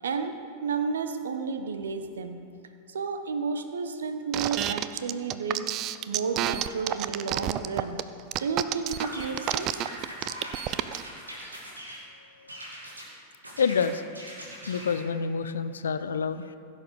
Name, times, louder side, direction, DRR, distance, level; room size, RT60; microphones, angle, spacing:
voice 1, 0.0-2.4 2.9-5.8 6.1-8.0 8.4-9.8, right 5 dB, 65° right, 8 dB, 0.8 m, -32 dB
sound 1, 4.3-11.0, right 13 dB, 35° right, 0.4 m, -29 dB
sound 2, 8.9-12.0 12.5-13.1 13.4-15.0, equal, 80° right, 2.3 m, -41 dB
voice 2, 13.6-14.0 14.7-16.6, left 6 dB, 70° left, 11 dB, 0.6 m, -27 dB
16.0 x 6.8 x 5.2 m, 2.6 s
figure-of-eight pair, 90°, 0 cm